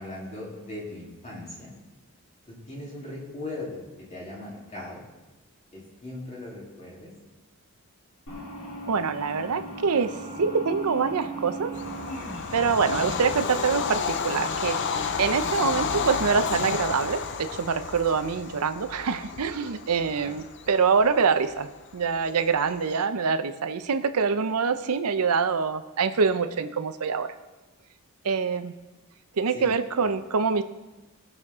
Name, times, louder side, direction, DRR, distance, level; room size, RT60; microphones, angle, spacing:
voice 1, 0.0-1.7 2.5-3.8 4.1-5.0 5.7-7.1 20.1-20.7 29.5-29.7 30.0-30.1, left 2 dB, 30° left, -5 dB, 3.1 m, -39 dB
sound 1, 8.3-14.6, right 2 dB, 80° left, 3.3 m, -39 dB
voice 2, 8.9-11.7 12.5-14.8 15.2-27.3 28.2-28.7 29.3-30.6, right 5 dB, 80° right, 10 dB, 0.6 m, -25 dB
Bird vocalization bird call bird song / Train, 11.7-22.9, left 5 dB, 55° left, 0.5 m, -31 dB
17.5 x 6.5 x 3.6 m, 1.1 s
head